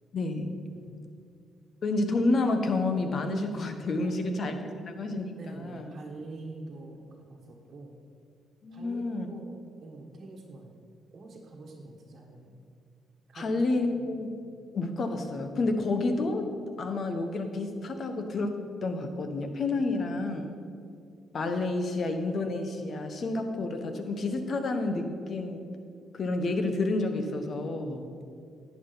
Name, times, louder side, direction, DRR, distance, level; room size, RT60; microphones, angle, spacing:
voice 1, 0.1-0.5 1.8-5.9 8.6-9.3 13.3-14.3 14.7-16.5 16.8-20.5 21.3-25.7 26.1-28.0, left 2 dB, 50° left, 6 dB, 1.2 m, -30 dB
voice 2, 0.7-1.0 3.9-4.8 5.4-8.0 8.7-9.5 9.8-10.8 11.1-12.6 13.3-13.6 13.9-14.2 14.4-14.6 27.9-28.1, right 3 dB, 50° right, -2 dB, 1.4 m, -46 dB
11.0 x 9.5 x 4.0 m, 2.4 s
cardioid pair, 90°, 0 cm